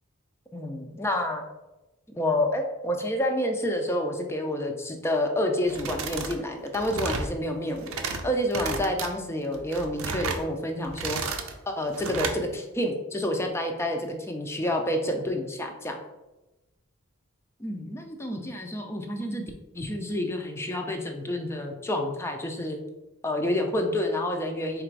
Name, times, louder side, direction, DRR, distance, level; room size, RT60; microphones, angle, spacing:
voice 1, 0.5-1.4 2.1-7.9 8.2-11.2 11.7-16.0 17.6-19.4 19.7-22.8 23.2-24.8, left 1 dB, 10° left, 3 dB, 0.4 m, -28 dB
sound 1, 5.7-6.4 6.7-7.3 7.7-8.2 8.5-9.1 9.5-10.4 10.8-11.5 11.9-12.4, right 4 dB, 75° right, 0.5 m, -32 dB
3.9 x 2.5 x 4.5 m, 1.0 s
head